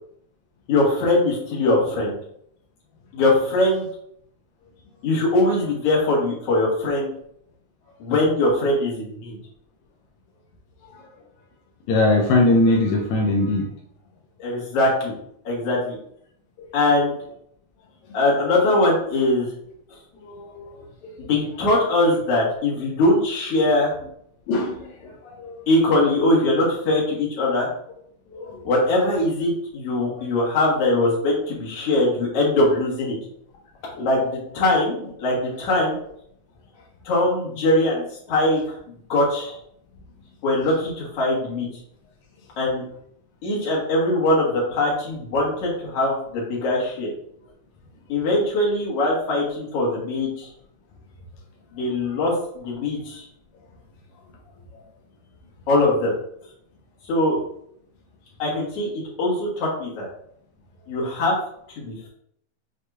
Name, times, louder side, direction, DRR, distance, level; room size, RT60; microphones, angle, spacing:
voice 1, 0.7-2.2 3.1-3.9 5.0-7.1 8.0-9.4 14.4-15.1 15.5-16.0 16.7-17.2 18.1-19.5 21.2-23.9 25.7-27.7 28.6-33.2 34.0-35.9 37.1-38.6 39.1-39.6 40.4-41.7 42.6-42.8 43.4-47.1 48.1-50.5 51.7-53.3 55.7-56.1 57.1-57.4 58.4-60.1 60.9-61.4 61.8-62.1, left 2 dB, 55° left, -5 dB, 2.0 m, -21 dB
voice 2, 11.9-13.7 20.2-20.8 24.5-24.9 25.4-25.6 28.3-28.5, left 2 dB, 85° left, 0 dB, 1.7 m, -20 dB
6.3 x 2.7 x 2.3 m, 0.69 s
omnidirectional pair, 4.0 m